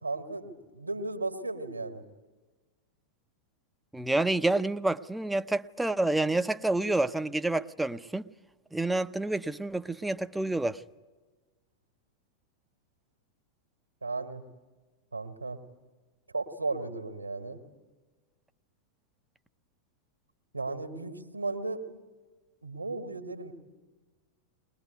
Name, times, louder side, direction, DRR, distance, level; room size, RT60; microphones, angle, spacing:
voice 1, 0.0-2.1 14.0-14.4 15.1-15.6 16.3-17.6 20.5-21.9 22.6-23.5, right 3 dB, 80° right, 1.8 m, -35 dB
voice 2, 3.9-8.2 8.7-10.8, right 2 dB, 5° right, 0.7 m, -28 dB
21.5 x 21.0 x 9.4 m
figure-of-eight pair, 90°, 0 cm